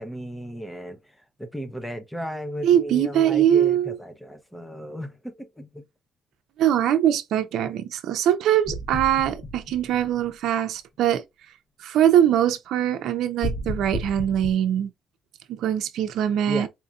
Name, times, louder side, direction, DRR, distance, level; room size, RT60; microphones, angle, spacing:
voice 1, 0.0-5.8 16.5-16.7, equal, 5° left, 0.7 m, -35 dB
voice 2, 2.6-4.0 6.6-11.2 11.8-14.9 15.5-16.7, right 10 dB, 80° right, 0.5 m, -22 dB
sound 1, 8.6-10.5 13.4-14.5, left 1 dB, 40° left, 1.4 m, -33 dB
4.3 x 2.7 x 2.3 m
cardioid pair, 90°, 0 cm